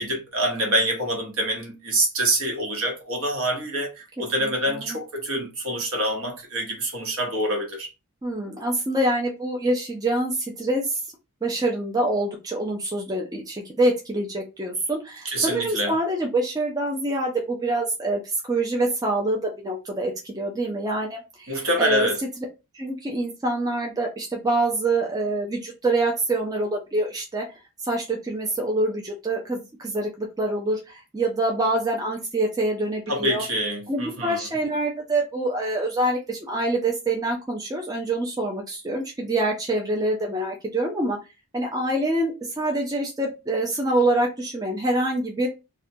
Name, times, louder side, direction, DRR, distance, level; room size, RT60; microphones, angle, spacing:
voice 1, 0.0-7.9 15.2-15.9 21.5-22.2 33.1-34.4, right 1 dB, 65° right, 1.0 m, -26 dB
voice 2, 4.4-5.0 8.2-11.0 11.4-18.2 18.5-22.1 22.7-27.5 27.8-33.4 33.9-41.2 41.5-45.5, right 2 dB, 15° right, 0.4 m, -25 dB
2.4 x 2.1 x 2.7 m
head